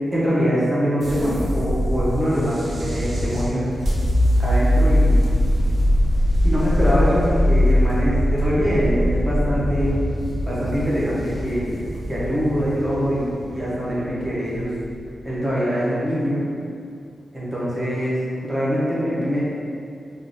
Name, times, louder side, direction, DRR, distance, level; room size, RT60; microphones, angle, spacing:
voice 1, 0.1-3.6 4.4-5.3 6.4-10.0 10.4-14.7 15.2-16.4 17.3-19.4, equal, 5° right, -9 dB, 0.8 m, -23 dB
sound 1, 1.0-15.2, left 1 dB, 45° right, 0.8 m, -21 dB
3.5 x 2.5 x 3.8 m, 2.4 s
wide cardioid pair, 155°, 0 cm